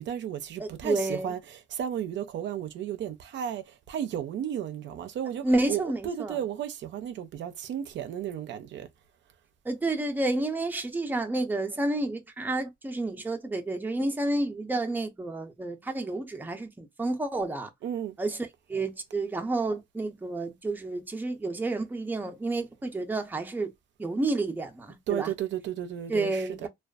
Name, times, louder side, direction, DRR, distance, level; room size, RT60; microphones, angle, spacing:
voice 1, 0.0-8.9 17.8-18.2 25.1-26.7, right 10 dB, 70° right, 0.5 m, -34 dB
voice 2, 0.6-1.3 5.4-6.4 9.6-17.7 18.2-18.4 18.7-23.7 24.0-25.3 26.1-26.7, right 2 dB, 10° right, 0.5 m, -30 dB
2.4 x 2.3 x 2.3 m
cardioid pair, 90°, 20 cm